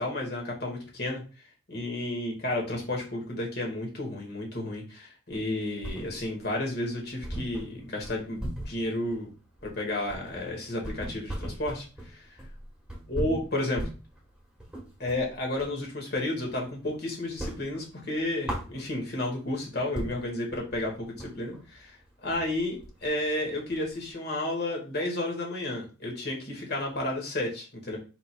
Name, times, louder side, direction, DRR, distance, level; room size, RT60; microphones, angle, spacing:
voice 1, 0.0-9.3 9.6-12.2 13.1-13.9 15.0-28.0, left 1 dB, 50° left, 0 dB, 1.7 m, -32 dB
sound 1, 5.3-6.5 6.8-6.9 7.2-15.8 16.2-17.0 17.2-19.2 19.7-19.8 19.9-24.1, right 1 dB, 5° right, 1.2 m, -38 dB
5.0 x 4.7 x 2.2 m, 0.34 s
head